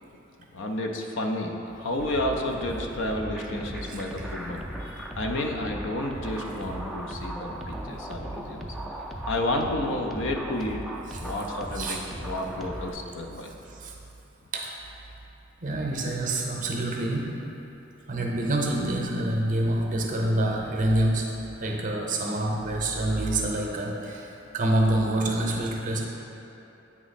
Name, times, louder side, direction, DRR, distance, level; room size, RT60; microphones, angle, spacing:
voice 1, 0.5-8.7 9.3-10.8 11.2-13.5, left 1 dB, 65° left, 2 dB, 0.5 m, -31 dB
sound 1, 2.0-12.9, right 1 dB, ahead, 0.3 m, -37 dB
voice 2, 11.7-12.0 13.7-13.9 14.5-14.8 15.6-17.5 18.1-21.3 21.6-26.0, right 1 dB, 40° right, 0 dB, 0.6 m, -27 dB
8.4 x 3.0 x 4.1 m, 2.9 s
head